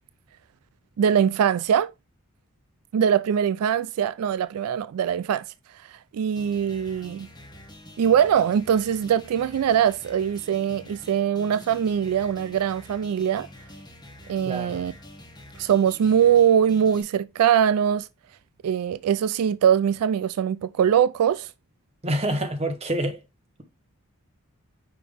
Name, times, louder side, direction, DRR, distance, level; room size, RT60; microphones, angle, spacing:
voice 1, 1.0-1.9 2.9-5.5 5.9-7.3 8.0-13.5 14.3-14.9 15.6-18.1 18.6-21.5, right 8 dB, 85° right, 0.3 m, -22 dB
sound 1, 6.4-17.0, left 1 dB, 20° left, 1.9 m, -46 dB
voice 2, 14.5-14.8 22.0-23.2, right 1 dB, 25° right, 1.1 m, -27 dB
5.9 x 5.0 x 3.4 m
head